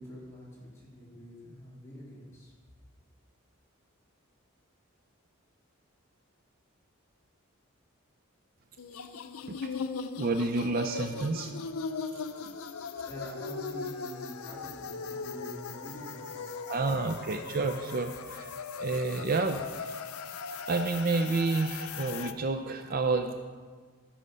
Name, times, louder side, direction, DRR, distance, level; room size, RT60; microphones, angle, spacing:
voice 1, 0.0-2.5 13.0-17.1, equal, 15° left, -8 dB, 3.4 m, -46 dB
sound 1, 8.8-22.3, left 5 dB, 90° left, 0.6 m, -39 dB
voice 2, 10.2-11.5 16.7-20.0 20.7-23.3, right 3 dB, 45° right, 6 dB, 0.5 m, -30 dB
13.5 x 6.4 x 5.5 m, 1.5 s
head